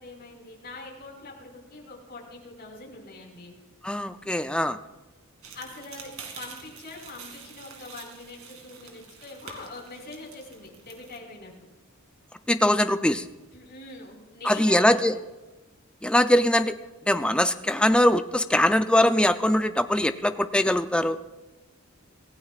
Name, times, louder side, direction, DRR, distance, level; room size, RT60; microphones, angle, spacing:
voice 1, 0.0-3.5 5.5-11.5 13.5-15.0, left 3 dB, 50° left, -2 dB, 5.1 m, -43 dB
voice 2, 3.8-4.8 12.5-13.3 14.4-15.1 16.0-16.7 17.1-21.2, left 1 dB, 5° left, 9 dB, 0.5 m, -22 dB
sound 1, 5.4-11.2, right 5 dB, 70° right, 2.5 m, -46 dB
26.0 x 16.0 x 2.5 m, 1.1 s
head